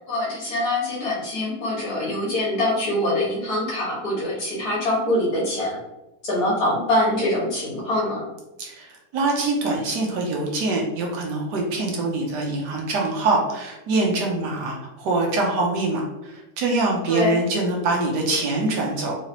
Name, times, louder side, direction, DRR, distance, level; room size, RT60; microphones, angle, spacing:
voice 1, 0.1-5.8 6.2-8.3 17.1-17.4, left 1 dB, 55° left, -6 dB, 1.8 m, -24 dB
voice 2, 8.6-19.2, right 2 dB, 70° right, -1 dB, 1.3 m, -24 dB
3.8 x 3.2 x 2.8 m, 0.97 s
omnidirectional pair, 2.0 m